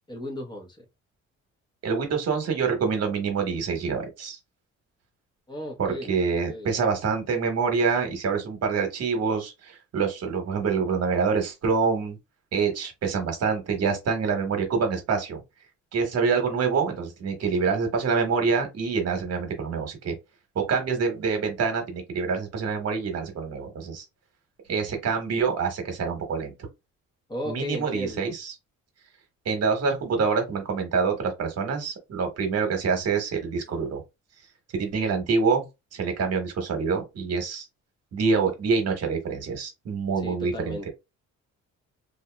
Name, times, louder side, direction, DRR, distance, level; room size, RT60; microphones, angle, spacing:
voice 1, 0.1-0.8 5.5-6.1 6.5-6.7 27.3-28.3 40.2-40.9, left 1 dB, 15° left, 1.0 m, -35 dB
voice 2, 1.8-4.4 5.8-12.2 12.5-15.4 15.9-20.1 20.5-24.0 24.7-26.5 27.5-28.5 29.4-34.0 34.7-35.6 35.9-37.7 38.1-40.9, right 5 dB, 55° right, 1.2 m, -26 dB
2.8 x 2.5 x 2.2 m
cardioid pair, 90°, 30 cm